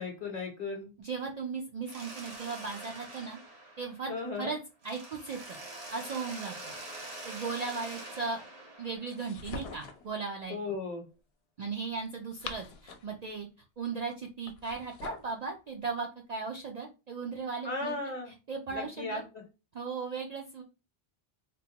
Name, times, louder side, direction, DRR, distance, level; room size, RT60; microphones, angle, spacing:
voice 1, 0.0-0.9 4.0-4.6 10.5-11.1 17.6-18.3 18.7-19.4, left 3 dB, 45° left, 2 dB, 0.8 m, -36 dB
voice 2, 1.0-3.4 3.8-4.1 4.4-4.6 4.8-5.6 5.9-6.7 7.2-8.4 8.8-10.6 11.6-13.5 13.8-17.9 18.3-19.2 19.7-20.6, right 4 dB, 55° right, 2 dB, 0.4 m, -37 dB
Mechanisms, 1.8-4.4 4.8-9.7, right 2 dB, 80° right, 1.3 m, -45 dB
sound 1, 9.1-10.1 12.1-13.2 14.4-15.3, left 4 dB, 75° left, 0.8 m, -43 dB
3.7 x 2.1 x 2.8 m, 0.30 s
omnidirectional pair, 1.1 m